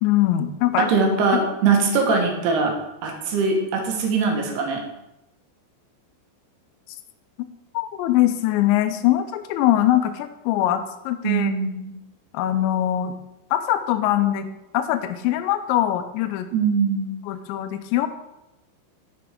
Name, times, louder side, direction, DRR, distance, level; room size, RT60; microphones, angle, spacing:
voice 1, 0.0-0.9 1.3-1.4 7.4-7.5 7.7-11.5 12.3-13.1 13.5-14.5 14.7-16.5 17.3-18.1, left 13 dB, 80° left, 9 dB, 2.8 m, -22 dB
voice 2, 0.8-2.7 3.0-4.8 11.2-11.9 16.5-17.1, right 4 dB, 70° right, 2 dB, 3.0 m, -21 dB
8.0 x 6.8 x 4.8 m, 0.90 s
omnidirectional pair, 5.4 m